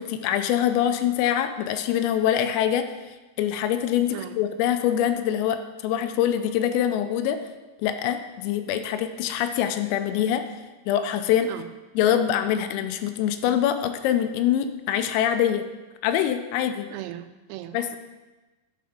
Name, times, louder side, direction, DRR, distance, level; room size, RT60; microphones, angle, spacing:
voice 1, 0.0-2.9 3.4-7.4 7.8-10.5 10.9-11.5 12.0-15.7 16.0-16.9 17.7-17.9, left 10 dB, 85° left, 8 dB, 3.2 m, -24 dB
voice 2, 4.1-4.4 11.5-11.7 16.9-18.0, right 13 dB, 85° right, 11 dB, 3.3 m, -38 dB
11.0 x 5.1 x 5.1 m, 1.1 s
omnidirectional pair, 6.0 m